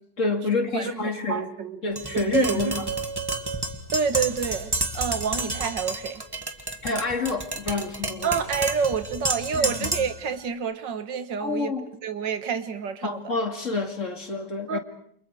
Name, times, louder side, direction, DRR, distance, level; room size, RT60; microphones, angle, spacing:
voice 1, 0.2-1.5 1.8-2.8 6.8-8.4 9.5-9.9 11.4-11.9 13.0-14.8, left 4 dB, 45° left, 2.7 m, -28 dB
voice 2, 0.7-1.8 2.1-2.8 3.9-6.2 8.2-11.7 12.0-13.3 14.7-14.8, right 6 dB, 90° right, 2.1 m, -28 dB
Tap, 2.0-10.2, right 2 dB, 15° right, 1.8 m, -30 dB
29.5 x 28.0 x 4.8 m
omnidirectional pair, 1.9 m